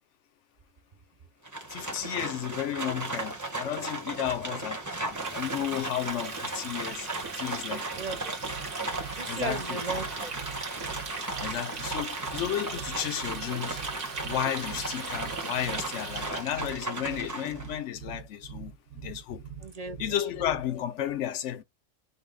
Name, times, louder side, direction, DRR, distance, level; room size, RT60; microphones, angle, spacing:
Livestock farm animals working animals, 1.4-17.8, right 2 dB, 15° right, 0.9 m, -36 dB
voice 1, 1.7-7.1 7.3-7.9 9.2-9.8 11.4-13.8 14.2-18.7 19.0-19.4 20.0-21.6, left 10 dB, 75° left, 1.0 m, -33 dB
Water tap faucet, 5.1-16.7, right 4 dB, 80° right, 1.5 m, -39 dB
sound 1, 7.9-20.8, right 7 dB, 65° right, 1.0 m, -44 dB
voice 2, 8.0-8.3 9.1-10.3 19.6-20.3, right 3 dB, 45° right, 0.6 m, -36 dB
5.5 x 2.2 x 3.9 m
omnidirectional pair, 1.2 m